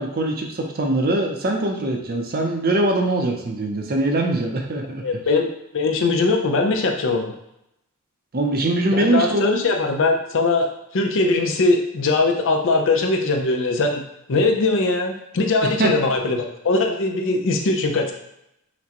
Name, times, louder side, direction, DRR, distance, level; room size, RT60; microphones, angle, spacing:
voice 1, 0.0-5.0 8.3-9.6 15.6-15.9, right 2 dB, 45° right, 2 dB, 0.6 m, -22 dB
voice 2, 5.0-5.5 5.7-7.3 8.9-10.7 10.9-14.0 14.3-18.1, left 3 dB, 60° left, 3 dB, 0.5 m, -20 dB
5.8 x 2.2 x 2.9 m, 0.83 s
head